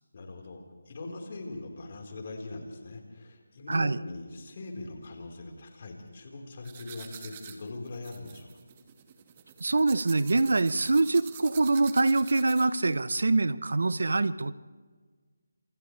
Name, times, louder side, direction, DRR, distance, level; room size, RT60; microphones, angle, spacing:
voice 1, 0.1-8.5, left 2 dB, 45° left, 2 dB, 4.5 m, -41 dB
sound 1, 6.6-12.9, right 8 dB, 30° right, 1.8 m, -47 dB
voice 2, 9.6-14.6, right 3 dB, 70° right, 15 dB, 0.9 m, -24 dB
29.5 x 27.0 x 3.4 m, 1.5 s
figure-of-eight pair, 160°, 0 cm